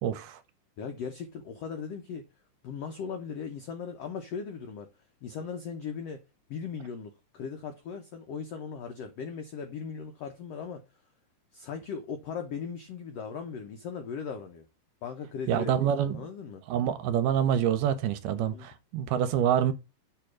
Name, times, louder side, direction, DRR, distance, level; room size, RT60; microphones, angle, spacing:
voice 1, 0.0-0.4 15.5-16.2 16.7-19.7, right 9 dB, 80° right, 2.0 m, -26 dB
voice 2, 0.8-2.2 2.6-4.9 5.2-6.2 6.5-10.8 11.5-14.6 15.0-16.6 18.3-18.7, left 6 dB, 85° left, 1.4 m, -38 dB
6.7 x 3.4 x 6.1 m
omnidirectional pair, 4.0 m